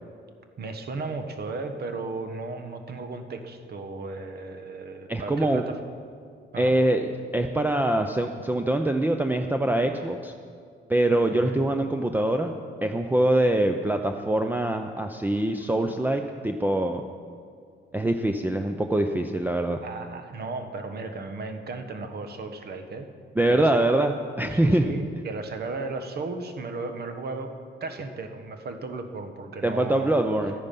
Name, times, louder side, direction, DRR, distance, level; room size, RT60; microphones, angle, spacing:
voice 1, 0.6-5.8 6.5-6.7 11.4-11.6 19.8-23.1 23.5-23.8 24.4-27.5 27.8-30.1, right 3 dB, 55° right, 7 dB, 1.2 m, -35 dB
voice 2, 5.1-5.6 6.6-10.3 10.9-12.5 12.8-17.0 17.9-19.8 23.4-24.9 29.6-30.5, right 1 dB, 10° right, 5 dB, 0.6 m, -24 dB
12.5 x 9.6 x 5.4 m, 2.2 s
cardioid pair, 90°, 20 cm